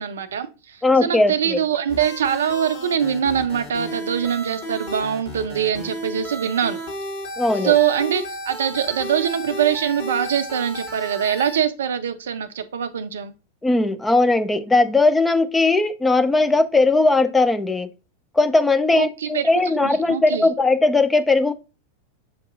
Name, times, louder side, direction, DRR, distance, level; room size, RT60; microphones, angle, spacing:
voice 1, 0.0-6.8 7.6-13.3 18.9-19.5 19.8-20.5, right 8 dB, 65° right, 0.4 m, -23 dB
voice 2, 0.8-1.6 7.4-7.7 13.6-17.9 18.4-21.5, left 3 dB, 10° left, 0.4 m, -18 dB
sound 1, 1.9-11.6, equal, 55° left, 1.8 m, -34 dB
7.0 x 2.6 x 2.4 m
figure-of-eight pair, 90°, 0 cm